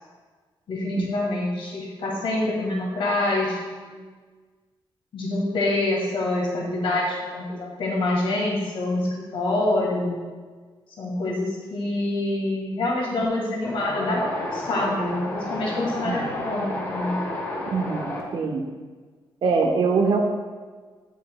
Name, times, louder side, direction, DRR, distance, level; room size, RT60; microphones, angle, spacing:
voice 1, 0.7-4.1 5.1-10.2 11.0-17.2, left 2 dB, 75° left, -2 dB, 1.7 m, -26 dB
Wind, 13.6-18.2, left 1 dB, 30° left, 1.2 m, -31 dB
voice 2, 17.7-18.7 19.4-20.2, right 4 dB, 70° right, 2 dB, 1.1 m, -23 dB
9.1 x 8.2 x 2.3 m, 1.4 s
wide cardioid pair, 170°, 9 cm